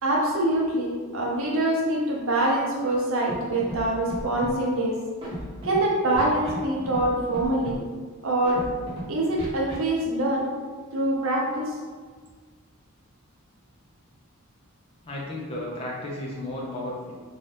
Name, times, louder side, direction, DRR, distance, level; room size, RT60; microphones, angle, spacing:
voice 1, 0.0-5.0 5.6-7.8 8.2-8.7 9.1-10.5 10.9-11.8, right 1 dB, 65° right, -2 dB, 0.6 m, -24 dB
Scratching (performance technique), 3.3-3.4 3.6-3.8 4.1-4.5 5.2-5.8 6.1-6.6 6.8-7.1 7.3-7.8 8.4-9.0 9.4-9.7, right 1 dB, 25° right, 0.8 m, -35 dB
voice 2, 15.0-17.1, left 1 dB, 25° left, -4 dB, 0.4 m, -33 dB
2.7 x 2.3 x 3.3 m, 1.5 s
head